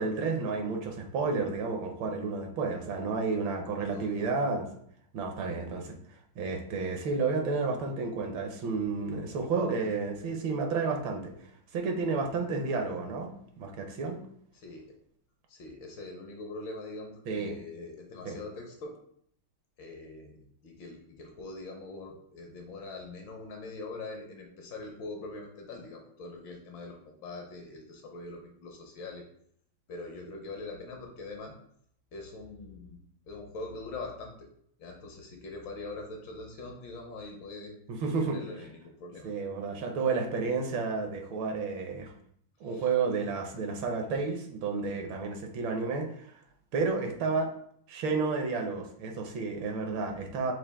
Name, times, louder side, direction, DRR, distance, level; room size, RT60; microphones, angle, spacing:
voice 1, 0.0-4.7 5.1-6.0 6.4-11.3 11.7-13.3 13.6-14.2 17.3-17.6 18.2-18.4 37.9-38.4 39.2-42.1 42.6-46.4 46.7-47.5 47.9-50.5, right 4 dB, 75° right, 3 dB, 1.4 m, -31 dB
voice 2, 3.8-4.3 14.5-14.9 15.5-18.9 19.8-29.2 29.9-31.5 32.1-33.0 33.3-34.5 34.8-37.7 38.2-39.3 42.6-42.8, left 3 dB, 70° left, 2 dB, 1.5 m, -43 dB
6.0 x 2.5 x 3.4 m, 0.67 s
omnidirectional pair, 2.3 m